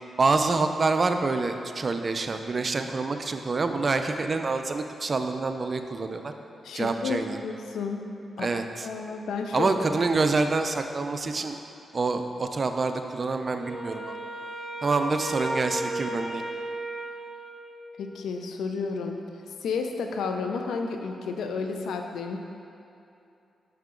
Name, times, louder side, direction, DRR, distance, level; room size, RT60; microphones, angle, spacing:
voice 1, 0.2-6.3 6.7-7.4 8.4-8.9 9.5-11.6 11.9-14.1 14.8-16.4, right 3 dB, 45° right, 7 dB, 0.4 m, -26 dB
voice 2, 6.6-8.1 8.4-8.5 8.8-9.7 18.0-19.2 19.6-22.4, left 5 dB, 85° left, 4 dB, 0.4 m, -31 dB
Wind instrument woodwind instrument, 13.6-18.0, right 2 dB, 20° left, 0.9 m, -35 dB
5.6 x 5.5 x 3.7 m, 2.7 s
supercardioid pair, 50°, 0 cm